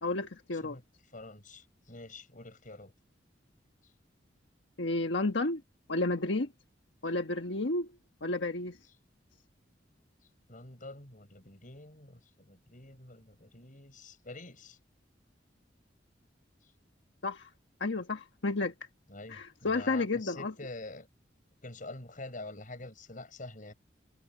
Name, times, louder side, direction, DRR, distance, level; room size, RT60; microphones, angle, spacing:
voice 1, 0.0-0.8 4.8-5.6 5.9-6.5 7.0-7.9 8.2-8.8 17.2-17.5 17.8-18.7 19.3-20.5, left 2 dB, 85° left, 1.3 m, -31 dB
voice 2, 1.1-2.9 10.5-14.8 19.1-21.1 21.6-23.7, left 2 dB, 45° left, 7.1 m, -46 dB
head